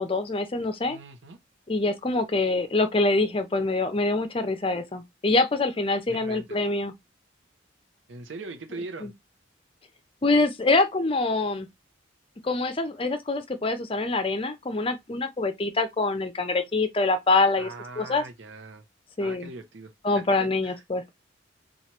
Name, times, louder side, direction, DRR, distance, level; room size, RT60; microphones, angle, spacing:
voice 1, 0.0-1.0 1.7-6.9 9.0-9.1 10.2-11.7 12.4-17.7 18.0-18.2 19.2-19.5 20.0-21.1, left 2 dB, 30° left, 0.5 m, -25 dB
voice 2, 0.9-1.4 6.1-6.6 8.1-9.1 17.6-18.8 19.2-20.8, right 3 dB, 70° right, 0.7 m, -41 dB
3.1 x 2.4 x 4.3 m
head